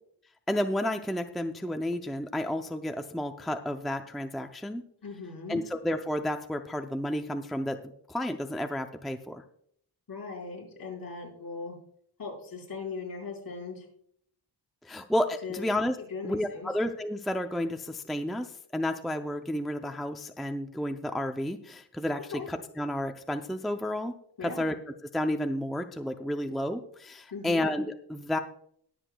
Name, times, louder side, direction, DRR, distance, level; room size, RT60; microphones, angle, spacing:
voice 1, 0.5-4.8 5.5-7.8 8.1-9.4 14.8-16.0 16.2-24.1 24.4-24.7 25.1-28.4, left 1 dB, ahead, 5 dB, 0.5 m, -31 dB
voice 2, 5.0-5.6 10.1-11.8 12.2-13.9 15.4-15.7 16.0-16.7 22.3-22.5 24.4-24.6 27.3-27.6, left 4 dB, 60° left, -2 dB, 5.0 m, -39 dB
21.0 x 8.0 x 2.3 m, 0.65 s
wide cardioid pair, 170°, 40 cm